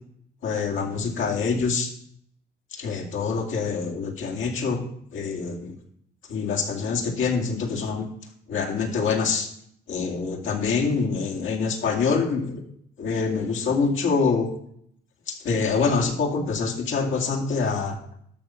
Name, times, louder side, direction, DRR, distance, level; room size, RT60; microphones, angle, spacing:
voice 1, 0.4-1.9 2.7-4.8 5.1-5.7 6.3-8.1 8.5-9.5 9.9-12.6 13.0-14.5 15.3-18.0, left 5 dB, 75° left, 1 dB, 2.5 m, -25 dB
12.0 x 6.4 x 5.7 m, 0.68 s
cardioid pair, 90°, 20 cm